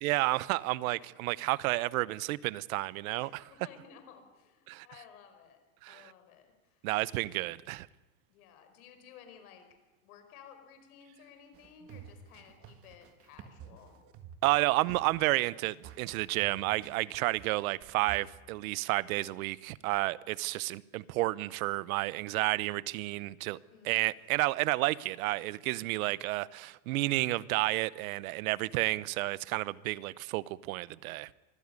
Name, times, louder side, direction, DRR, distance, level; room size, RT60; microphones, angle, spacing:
voice 1, 0.0-3.3 4.7-4.9 5.8-6.1 6.8-7.9 14.4-23.6 23.8-31.3, right 19 dB, 75° right, 0.9 m, -31 dB
voice 2, 3.1-5.6 5.9-6.9 8.3-9.7 10.0-14.0 23.7-24.1, left 7 dB, 80° left, 5.3 m, -55 dB
sound 1, 11.5-18.2, right 9 dB, 30° right, 1.8 m, -51 dB
24.0 x 15.5 x 9.7 m
supercardioid pair, 165°, 42 cm